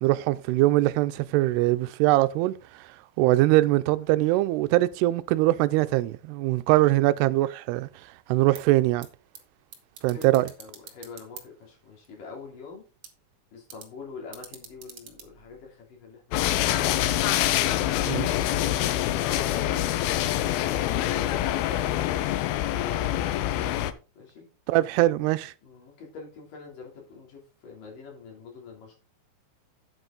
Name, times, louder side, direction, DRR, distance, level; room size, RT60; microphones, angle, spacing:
voice 1, 0.0-2.5 3.2-7.9 8.3-9.1 10.0-10.5 18.1-18.3 24.7-25.5, right 17 dB, 85° right, 2.6 m, -22 dB
sound 1, 8.4-16.2, right 8 dB, 60° right, 1.5 m, -50 dB
voice 2, 10.1-12.8 13.5-17.2 18.5-22.9 24.1-24.5 25.6-28.9, left 5 dB, 55° left, 4.6 m, -44 dB
sound 2, 16.3-23.9, left 13 dB, 80° left, 2.4 m, -25 dB
8.9 x 8.1 x 3.8 m
omnidirectional pair, 4.8 m